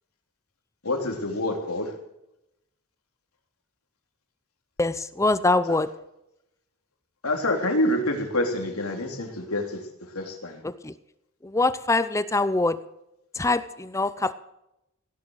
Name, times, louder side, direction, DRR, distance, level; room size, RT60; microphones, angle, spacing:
voice 1, 0.8-1.9 7.2-9.8 10.1-10.6, left 1 dB, 85° left, 3 dB, 3.3 m, -27 dB
voice 2, 4.8-5.9 10.6-10.9 11.4-12.8 13.3-14.3, left 2 dB, 15° left, 14 dB, 0.6 m, -24 dB
17.0 x 11.0 x 6.5 m, 0.84 s
head